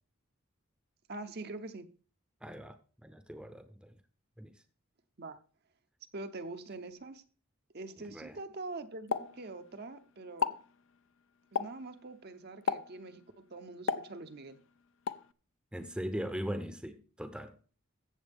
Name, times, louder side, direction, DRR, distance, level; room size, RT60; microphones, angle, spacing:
voice 1, 1.1-1.9 5.2-5.4 6.1-7.2 7.7-10.6 11.5-14.6, right 2 dB, 45° right, 0.7 m, -44 dB
voice 2, 2.4-2.8 3.0-4.0 4.4-4.5 8.1-8.4 15.7-17.5, equal, 5° right, 0.7 m, -39 dB
Explosion, 9.1-10.0 10.3-10.7 11.6-11.9 12.7-13.0 13.9-14.6 15.1-15.3, left 6 dB, 60° left, 0.5 m, -34 dB
15.0 x 7.4 x 3.5 m
head